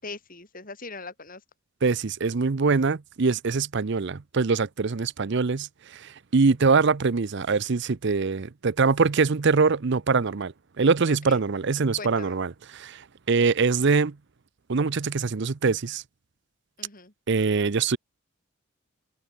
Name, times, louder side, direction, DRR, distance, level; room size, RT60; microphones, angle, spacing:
voice 1, 0.0-1.4 11.1-11.4 12.0-12.3 16.8-17.1, left 3 dB, 40° left, 5.3 m, -40 dB
voice 2, 1.8-14.1 14.7-16.0 17.3-18.0, right 4 dB, 55° right, 0.6 m, -23 dB
head